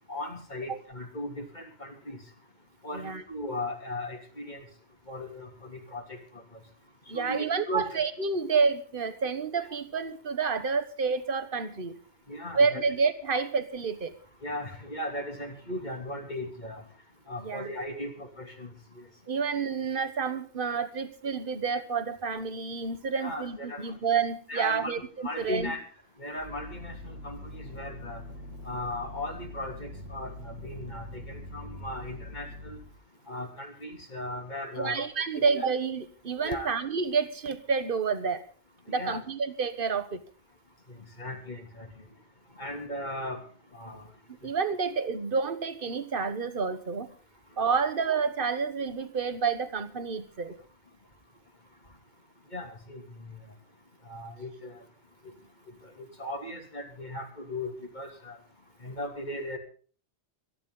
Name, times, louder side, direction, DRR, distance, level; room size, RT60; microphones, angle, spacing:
voice 1, 0.1-2.2 2.8-4.6 5.1-6.4 7.1-8.0 12.3-12.8 14.4-16.8 17.3-18.7 23.1-23.9 24.5-24.9 25.2-25.8 26.2-28.2 28.6-32.8 33.3-35.0 35.4-35.5 36.4-36.7 38.9-39.2 41.2-41.9 42.6-43.4 43.7-44.1 52.5-53.0 53.3-53.4 54.1-54.7 56.0-58.4 58.8-59.6, left 1 dB, 40° left, 3 dB, 3.3 m, -37 dB
voice 2, 7.1-11.9 12.5-14.1 17.4-17.7 19.3-25.7 34.8-38.4 38.9-40.2 44.4-47.1 47.6-50.5, right 5 dB, 45° right, 11 dB, 1.5 m, -29 dB
sound 1, 26.4-32.9, left 1 dB, 85° right, 4.1 m, -43 dB
26.0 x 10.5 x 3.9 m, 0.41 s
omnidirectional pair, 1.2 m